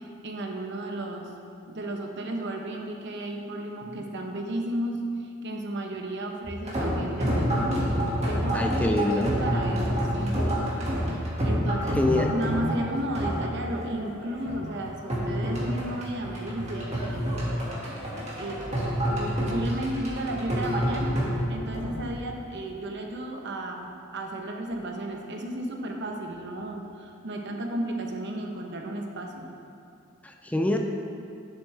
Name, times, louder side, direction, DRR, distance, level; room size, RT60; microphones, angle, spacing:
voice 1, 0.0-1.3 1.7-7.9 8.3-10.4 10.8-10.9 11.4-12.0 12.3-17.5 18.2-18.6 19.1-21.2 21.5-29.5, right 1 dB, 60° right, 2 dB, 0.9 m, -33 dB
sound 1, 6.4-22.1, equal, 35° right, 1.9 m, -28 dB
voice 2, 8.5-9.4 11.9-12.4 30.2-30.8, left 2 dB, 5° left, 3 dB, 0.4 m, -25 dB
10.5 x 7.2 x 3.4 m, 2.5 s
head